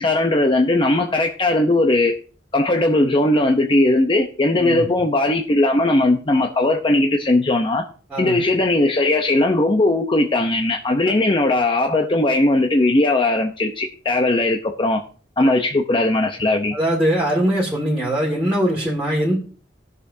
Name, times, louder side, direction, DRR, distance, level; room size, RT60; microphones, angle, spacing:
voice 1, 0.0-2.2 2.5-7.8 8.2-15.0 15.4-16.8, left 2 dB, 30° left, 3 dB, 0.7 m, -18 dB
voice 2, 4.6-4.9 8.1-8.4 15.4-15.5 16.7-19.4, right 1 dB, 5° right, -5 dB, 2.1 m, -21 dB
19.0 x 6.7 x 2.7 m, 0.39 s
head